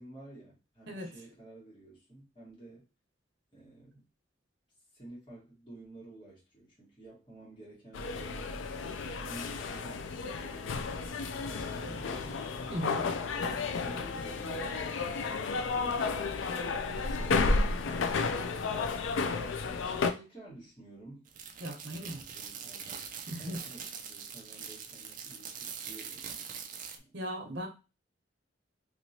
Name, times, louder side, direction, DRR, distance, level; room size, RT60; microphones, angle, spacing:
voice 1, 0.0-2.9 3.5-4.1 4.9-8.6 9.3-10.1 10.4-12.5 13.4-14.8 15.3-16.4 16.9-18.4 19.8-21.3 21.9-26.3 27.0-27.1, right 2 dB, 25° left, -7 dB, 1.7 m, -52 dB
sound 1, 7.9-20.1, left 4 dB, 90° left, 0.4 m, -32 dB
sound 2, 11.8-13.4, equal, ahead, 1.2 m, -52 dB
voice 2, 12.7-13.1 21.6-22.2 23.3-23.6 26.9-27.7, equal, 60° right, 2 dB, 1.0 m, -38 dB
sound 3, 21.3-27.0, right 7 dB, 45° right, 0.4 m, -43 dB
3.0 x 2.9 x 2.8 m, 0.30 s
head